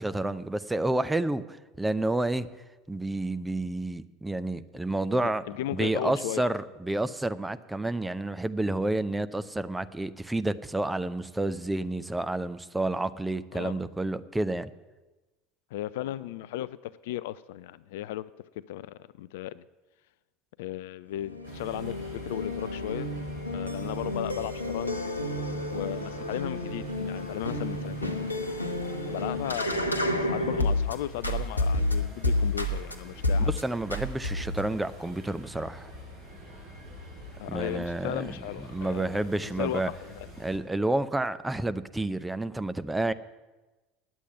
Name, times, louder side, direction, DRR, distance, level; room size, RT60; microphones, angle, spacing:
voice 1, 0.0-2.5 2.9-5.4 5.7-14.7 33.4-35.9 37.5-38.4 38.7-39.9 40.4-43.1, right 2 dB, 10° right, 12 dB, 0.6 m, -30 dB
voice 2, 5.2-6.5 13.5-13.8 15.7-18.3 18.7-19.6 20.6-23.1 23.5-25.1 25.7-28.3 29.1-33.5 37.4-40.3, left 14 dB, 60° left, 18 dB, 0.4 m, -36 dB
sound 1, 21.2-30.9 31.2-32.9 33.2-33.6 33.9-34.7, left 1 dB, 85° left, 0.9 m, -30 dB
sound 2, 21.4-40.6, left 1 dB, 55° right, 5.7 m, -46 dB
9.7 x 8.3 x 9.1 m, 1.2 s
figure-of-eight pair, 70°, 0 cm